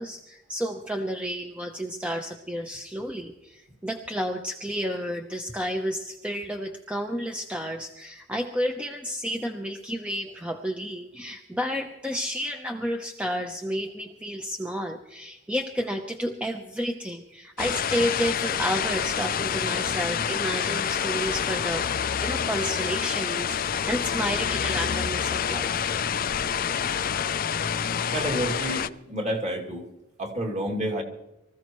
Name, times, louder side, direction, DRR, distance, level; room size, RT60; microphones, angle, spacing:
voice 1, 0.0-25.7, equal, 5° right, 3 dB, 0.8 m, -31 dB
sound 1, 17.6-28.9, left 7 dB, 40° left, 0.4 m, -27 dB
voice 2, 28.1-29.9 30.2-31.0, right 1 dB, 30° right, 0 dB, 2.6 m, -29 dB
25.0 x 15.0 x 3.1 m, 0.92 s
head